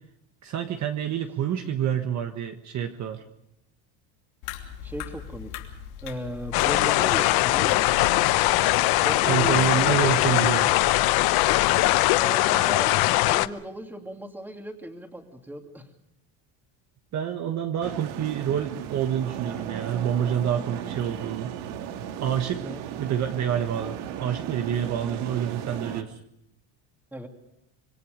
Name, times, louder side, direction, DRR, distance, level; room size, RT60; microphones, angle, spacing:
voice 1, 0.4-3.2 9.2-10.7 17.1-21.5 22.2-22.7 23.0-26.2, right 9 dB, 40° right, 5 dB, 1.4 m, -27 dB
sound 1, 4.4-11.8, left 8 dB, 85° left, 3.1 m, -40 dB
voice 2, 4.8-5.5 6.0-7.8 9.0-10.2 12.0-13.0 13.2-15.9 22.6-22.8 27.1-27.3, equal, 5° right, 3 dB, 2.6 m, -36 dB
sound 2, 6.5-13.5, left 17 dB, 55° left, 0.8 m, -21 dB
sound 3, 17.8-26.0, right 9 dB, 75° right, 2.0 m, -36 dB
26.0 x 22.0 x 5.2 m, 0.82 s
cardioid pair, 135°, 44 cm